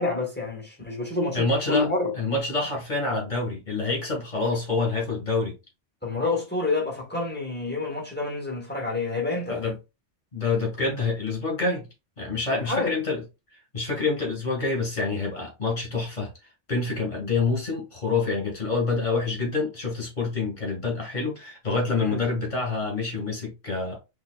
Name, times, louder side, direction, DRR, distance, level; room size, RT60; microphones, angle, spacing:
voice 1, 0.0-2.1 6.0-9.6 12.6-12.9 21.9-22.2, left 3 dB, 10° left, 1.4 m, -28 dB
voice 2, 1.3-1.9 2.1-5.5 9.5-9.7 10.3-11.9 12.2-13.2 13.7-16.3 16.7-24.0, left 3 dB, 40° left, 1.9 m, -27 dB
5.5 x 2.8 x 2.3 m
omnidirectional pair, 1.2 m